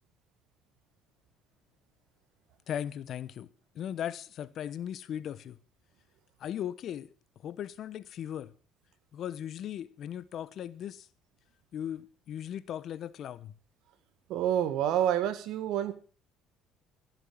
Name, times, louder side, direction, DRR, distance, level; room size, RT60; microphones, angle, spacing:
voice 1, 2.7-3.5 3.7-5.6 6.4-7.1 7.4-8.5 9.1-11.1 11.7-13.5, left 10 dB, 60° left, 1.0 m, -38 dB
voice 2, 14.3-15.9, right 10 dB, 70° right, 1.7 m, -28 dB
14.5 x 7.6 x 7.6 m
supercardioid pair, 75°, 0 cm